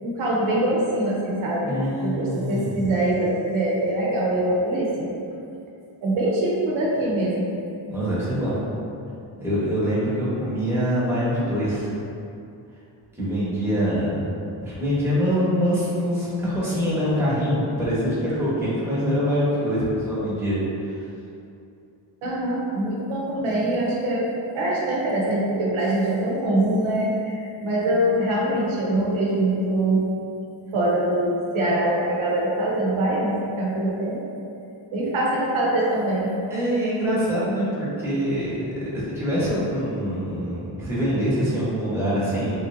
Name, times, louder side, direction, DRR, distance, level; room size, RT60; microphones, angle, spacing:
voice 1, 0.0-5.1 6.0-7.5 22.2-24.3 24.5-30.0 30.7-34.2 34.9-36.3, right 1 dB, 75° right, -4 dB, 0.7 m, -23 dB
voice 2, 1.6-2.9 7.9-8.6 9.4-11.9 13.2-14.3 14.6-21.1 36.5-38.6 38.9-42.6, equal, 5° right, -10 dB, 1.0 m, -24 dB
3.2 x 2.7 x 2.5 m, 2.6 s
cardioid pair, 105°, 49 cm